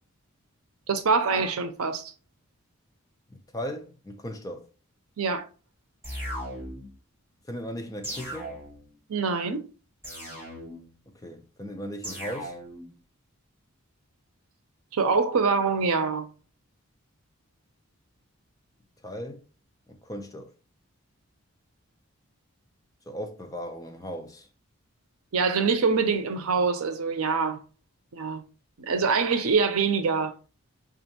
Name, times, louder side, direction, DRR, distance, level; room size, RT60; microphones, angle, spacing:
voice 1, 0.9-2.1 5.2-5.4 9.1-9.6 14.9-16.3 25.3-27.6 28.1-28.4 28.8-30.3, right 5 dB, 75° right, 0.6 m, -24 dB
voice 2, 3.3-4.6 7.5-8.6 11.2-12.6 19.0-19.4 19.9-20.5 23.1-24.5, equal, 15° left, 0.4 m, -37 dB
sound 1, 6.0-6.9 8.0-8.9 10.0-10.9 12.0-12.9, equal, 10° right, 1.4 m, -37 dB
5.3 x 2.4 x 2.7 m
head